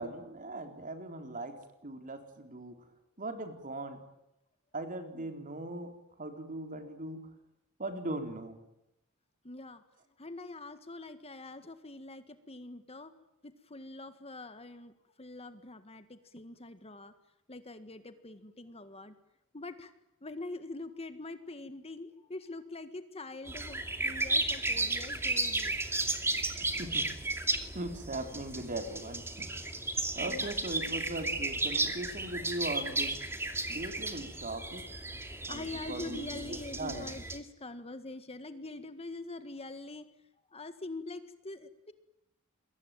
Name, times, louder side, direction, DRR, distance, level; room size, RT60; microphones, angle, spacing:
voice 1, 0.0-1.6 1.8-2.8 3.2-4.0 4.7-7.3 7.8-8.6 26.8-27.1 27.7-29.5 30.2-33.2 33.7-34.9 35.5-37.1, right 2 dB, 40° right, 6 dB, 4.0 m, -39 dB
voice 2, 9.4-9.8 10.2-13.1 13.4-17.1 17.5-19.2 19.5-19.9 20.2-25.8 30.3-30.5 35.5-40.1 40.5-41.9, left 2 dB, 30° left, 10 dB, 1.8 m, -44 dB
sound 1, 23.5-37.4, right 2 dB, 10° right, 2.6 m, -34 dB
28.0 x 23.0 x 9.2 m, 0.85 s
head